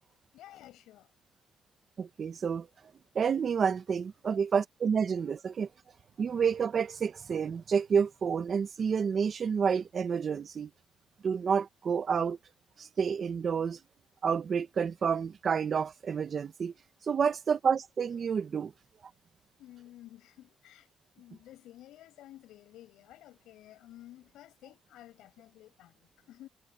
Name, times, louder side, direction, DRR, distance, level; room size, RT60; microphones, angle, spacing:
voice 1, 0.3-1.1 19.6-20.9 21.2-26.5, left 14 dB, 85° left, 7.3 m, -53 dB
voice 2, 2.0-2.7 3.1-5.7 6.2-10.7 11.2-12.4 12.8-13.8 14.2-16.7 17.1-18.7, right 6 dB, 50° right, 1.3 m, -29 dB
cardioid pair, 90°, 0 cm